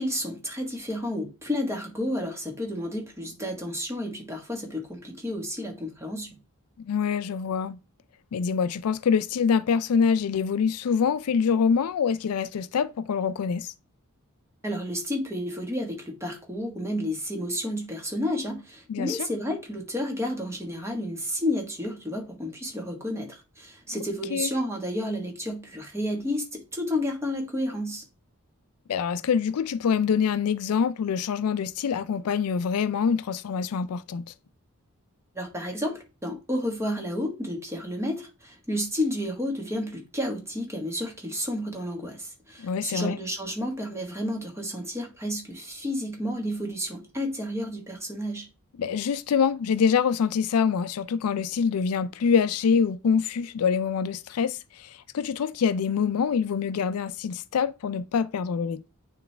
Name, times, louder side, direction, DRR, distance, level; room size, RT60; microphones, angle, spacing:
voice 1, 0.0-6.4 14.6-28.0 35.3-48.5, left 1 dB, 10° right, 1.4 m, -31 dB
voice 2, 6.8-7.8 8.3-13.7 18.9-19.2 24.3-24.5 28.9-34.2 42.6-43.2 48.8-58.9, left 6 dB, 80° left, 0.4 m, -25 dB
9.3 x 3.1 x 3.3 m
head